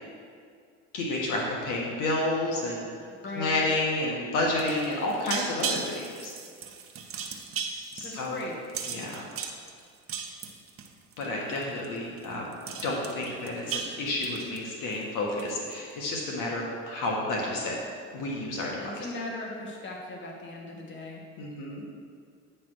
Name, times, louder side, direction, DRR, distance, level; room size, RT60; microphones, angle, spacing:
voice 1, 0.9-2.9 3.4-6.3 7.9-8.3 8.9-9.3 11.2-12.5 12.8-17.8 18.1-19.1 21.4-21.8, left 2 dB, 65° left, -2 dB, 1.5 m, -30 dB
voice 2, 3.1-3.6 8.0-8.6 18.8-21.2, left 2 dB, 35° left, -1 dB, 1.6 m, -38 dB
sound 1, 4.5-11.3 11.5-11.9 12.2-12.3 12.5-15.0 15.4-15.7, right 6 dB, 40° right, 0.9 m, -36 dB
9.3 x 3.4 x 6.1 m, 2.2 s
supercardioid pair, 90°, 34 cm